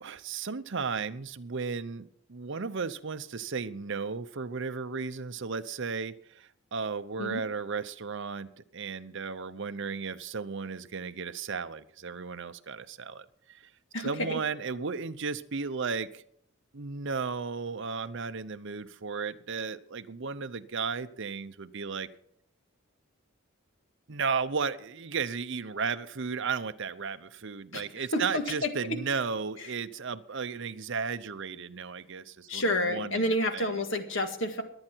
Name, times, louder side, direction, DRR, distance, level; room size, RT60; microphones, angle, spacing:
voice 1, 0.0-13.6 14.0-16.2 16.7-22.1 24.1-33.8, right 5 dB, 55° right, 10 dB, 0.7 m, -34 dB
voice 2, 13.9-14.4 27.7-27.8 28.1-29.0 32.5-34.6, left 1 dB, 60° left, 6 dB, 1.9 m, -29 dB
22.5 x 8.8 x 4.6 m, 0.67 s
head